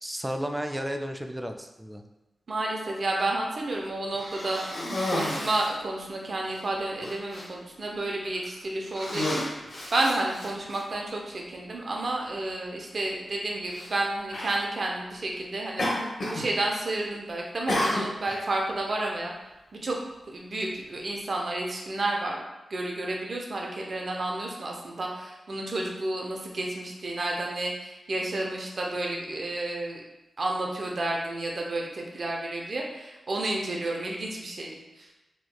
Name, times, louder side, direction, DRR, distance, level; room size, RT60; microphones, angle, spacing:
voice 1, 0.0-2.0, equal, 15° right, 5 dB, 0.3 m, -33 dB
voice 2, 2.5-4.6 5.1-9.5 9.9-19.3 19.7-20.0 20.3-22.4 22.7-30.0 30.4-35.1, right 2 dB, 60° right, -1 dB, 0.6 m, -31 dB
Cough, 4.1-5.8 6.5-6.6 7.0-7.5 8.2-8.5 8.9-10.8 11.7-11.8 13.7-13.9 14.3-14.6 15.8-16.5 16.7-17.1 17.7-18.4, left 1 dB, 65° left, 0.9 m, -31 dB
3.4 x 2.9 x 2.2 m, 1.0 s
cardioid pair, 45°, 0 cm